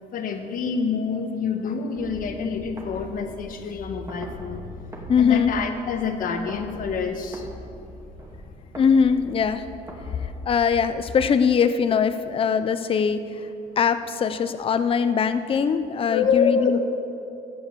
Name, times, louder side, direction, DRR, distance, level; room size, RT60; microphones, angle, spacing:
voice 1, 0.1-7.5 10.0-10.3 16.1-16.8, left 6 dB, 55° left, 6 dB, 1.4 m, -27 dB
sound 1, 2.0-11.0, right 1 dB, 15° right, 2.6 m, -41 dB
voice 2, 5.1-5.5 8.8-9.6 10.2-13.5 13.8-16.8, left 6 dB, 35° left, 11 dB, 0.6 m, -21 dB
13.5 x 8.7 x 6.9 m, 2.6 s
cardioid pair, 110°, 17 cm